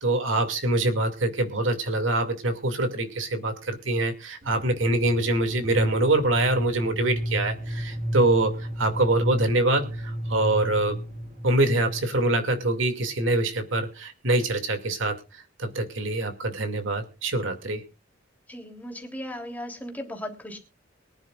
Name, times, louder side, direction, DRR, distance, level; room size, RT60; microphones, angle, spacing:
voice 1, 0.0-11.0 11.4-17.8, right 2 dB, 75° right, 6 dB, 2.4 m, -24 dB
sound 1, 4.4-12.2, equal, 45° right, 1.5 m, -33 dB
voice 2, 18.5-20.6, left 1 dB, 10° left, 1 dB, 3.1 m, -36 dB
23.5 x 10.5 x 2.4 m, 0.31 s
head